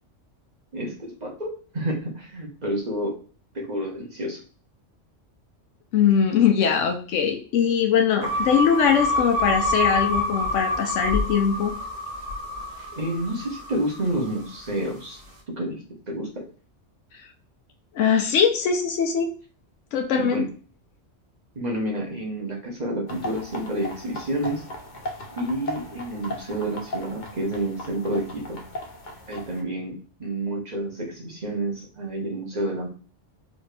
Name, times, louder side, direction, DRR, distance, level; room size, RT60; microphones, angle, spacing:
voice 1, 0.7-3.2 3.5-4.4 12.9-15.2 15.5-15.8 16.1-16.4 20.1-20.5 21.5-24.6 25.4-28.6 29.3-32.9, right 1 dB, 35° right, -2 dB, 1.3 m, -29 dB
voice 2, 5.9-11.7 17.9-19.3 19.9-20.4, left 7 dB, 90° left, 4 dB, 1.0 m, -21 dB
sound 1, 8.2-14.6, left 1 dB, 80° right, 1.4 m, -27 dB
sound 2, 23.1-29.6, left 1 dB, 45° left, 0.8 m, -37 dB
4.3 x 2.9 x 3.2 m, 0.38 s
omnidirectional pair, 1.3 m